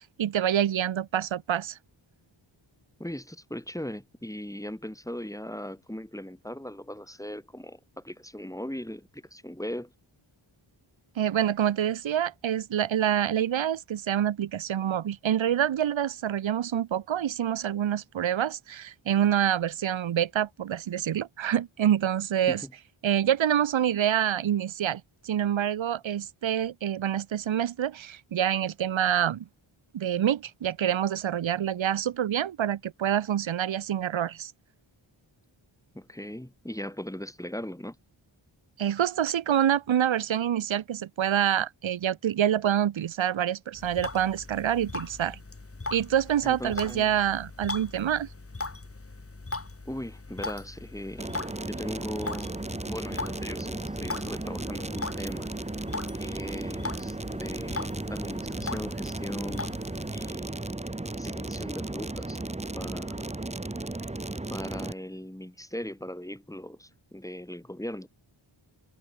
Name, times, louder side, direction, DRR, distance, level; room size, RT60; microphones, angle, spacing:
voice 1, 0.2-1.8 11.2-22.6 23.0-29.5 29.9-34.5 38.8-45.4 45.9-48.3, right 10 dB, 70° right, 0.8 m, -26 dB
voice 2, 3.0-9.9 22.5-22.7 35.9-38.0 46.4-47.1 49.9-55.5 56.1-59.8 60.1-60.6 61.2-62.4 62.7-63.3 64.0-64.1 64.5-68.1, left 1 dB, 5° left, 5.2 m, -39 dB
sound 1, 43.7-60.3, left 3 dB, 30° left, 3.0 m, -40 dB
sound 2, 51.2-64.9, right 2 dB, 15° right, 1.2 m, -35 dB
wide cardioid pair, 110°, 48 cm